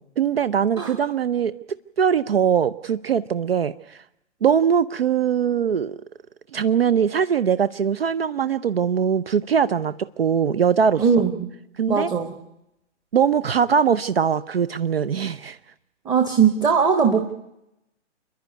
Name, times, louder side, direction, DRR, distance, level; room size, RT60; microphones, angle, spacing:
voice 1, 0.2-1.5 2.0-4.0 4.4-6.0 6.5-11.0 11.8-12.1 13.1-15.6 17.1-17.2, right 7 dB, 55° right, 16 dB, 0.7 m, -21 dB
voice 2, 11.0-11.5 11.9-12.3 16.0-17.2, right 6 dB, 10° right, 6 dB, 1.0 m, -19 dB
29.5 x 10.5 x 9.4 m, 0.84 s
figure-of-eight pair, 125°, 36 cm